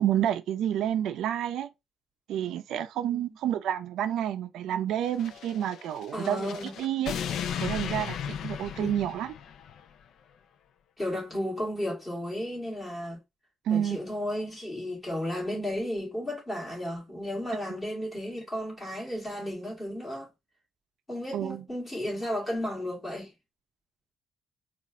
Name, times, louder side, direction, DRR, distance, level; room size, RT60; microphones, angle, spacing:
voice 1, 0.0-1.7 2.3-6.5 6.8-7.1 7.6-9.3 13.7-14.0 21.3-21.6, right 10 dB, 80° right, 0.4 m, -29 dB
sound 1, 5.1-9.8, left 8 dB, 65° left, 0.3 m, -36 dB
voice 2, 6.1-6.7 8.8-8.9 11.0-13.2 13.7-20.3 21.1-23.3, left 1 dB, 15° left, 2.5 m, -33 dB
4.2 x 2.4 x 3.6 m
cardioid pair, 140°, 0 cm